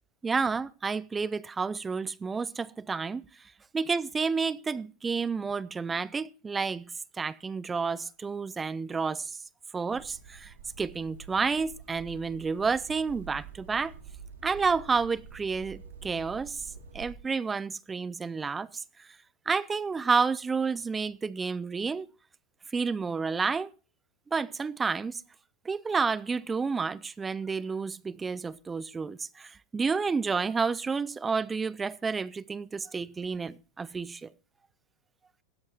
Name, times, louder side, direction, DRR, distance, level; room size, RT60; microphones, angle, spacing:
voice 1, 0.2-6.8 7.2-9.4 9.7-13.9 14.4-16.7 16.9-19.1 19.5-22.1 22.7-23.7 24.3-25.2 25.6-34.3, right 5 dB, 20° right, 0.5 m, -30 dB
sound 1, 9.9-17.2, right 6 dB, 75° right, 2.5 m, -47 dB
16.0 x 13.0 x 2.9 m
hypercardioid pair, 90°, 0 cm